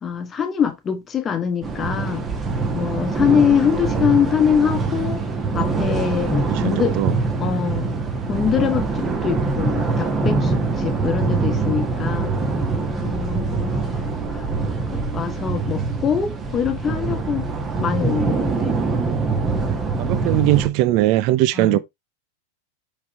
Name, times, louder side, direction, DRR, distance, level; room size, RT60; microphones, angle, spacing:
voice 1, 0.0-2.3 2.7-5.2 5.5-7.0 7.4-8.0 8.3-12.3 13.0-14.0 14.3-14.5 14.9-17.5 17.8-18.7 21.5-21.8, left 7 dB, 20° left, 1.3 m, -23 dB
sound 1, 1.6-20.7, right 3 dB, 20° right, 1.4 m, -24 dB
voice 2, 6.4-7.2 11.3-11.4 13.7-13.9 20.0-21.8, right 16 dB, 45° right, 0.6 m, -20 dB
5.9 x 5.5 x 3.3 m
figure-of-eight pair, 90°, 0 cm